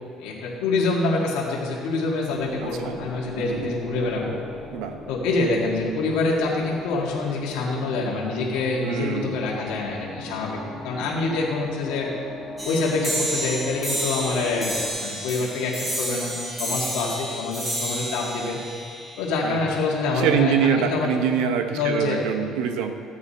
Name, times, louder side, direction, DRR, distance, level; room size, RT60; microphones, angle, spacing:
voice 1, 0.2-4.4 5.1-10.6 10.8-12.1 12.6-18.6 19.2-21.1 21.7-22.2, left 3 dB, 90° left, -4 dB, 2.1 m, -26 dB
sound 1, 2.3-14.9, left 2 dB, ahead, 3.1 m, -39 dB
voice 2, 2.6-2.9 3.3-3.7 4.7-4.9 8.8-9.4 19.4-19.7 20.1-22.9, right 8 dB, 85° right, 7 dB, 0.9 m, -25 dB
sound 2, 12.6-19.6, right 1 dB, 20° right, 3.4 m, -30 dB
14.5 x 8.6 x 4.3 m, 2.3 s
cardioid pair, 115°, 0 cm